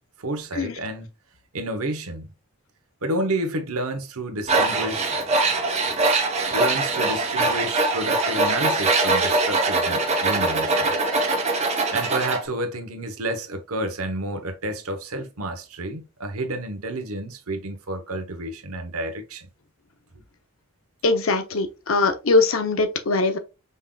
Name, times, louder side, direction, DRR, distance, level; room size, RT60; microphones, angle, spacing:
voice 1, 0.2-1.1 1.5-2.3 3.0-5.2 5.4-5.5 6.5-10.9 11.9-19.5, right 1 dB, 80° right, 1.0 m, -30 dB
Tools, 4.5-12.4, right 3 dB, 30° right, 0.8 m, -22 dB
voice 2, 21.0-23.4, left 3 dB, 65° left, 0.7 m, -21 dB
5.3 x 3.7 x 2.3 m
head